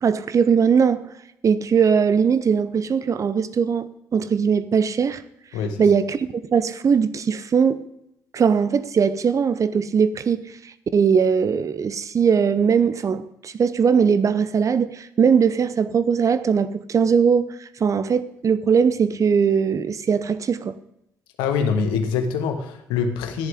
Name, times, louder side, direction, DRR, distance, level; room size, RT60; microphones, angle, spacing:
voice 1, 0.0-1.1 1.4-5.2 5.8-7.8 8.3-10.5 10.9-20.7, right 6 dB, 40° right, 0.7 m, -20 dB
voice 2, 21.4-23.5, left 6 dB, 65° left, 1.4 m, -24 dB
13.5 x 11.0 x 3.6 m
figure-of-eight pair, 45°, 8 cm